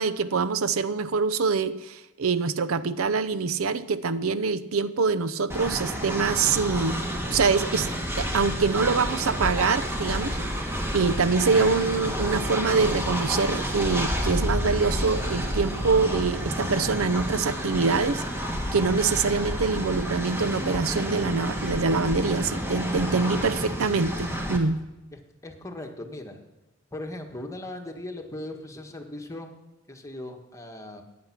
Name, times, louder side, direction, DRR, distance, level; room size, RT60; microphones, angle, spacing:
voice 1, 0.0-7.0 7.3-7.9 8.2-10.4 10.9-18.2 18.7-24.8, right 4 dB, 85° right, 14 dB, 0.6 m, -25 dB
Train, 5.5-24.6, equal, 10° right, 1.6 m, -30 dB
voice 2, 25.1-26.4 26.9-29.5 29.9-31.0, left 1 dB, 15° left, 3 dB, 1.4 m, -38 dB
14.5 x 9.6 x 5.9 m, 1.0 s
head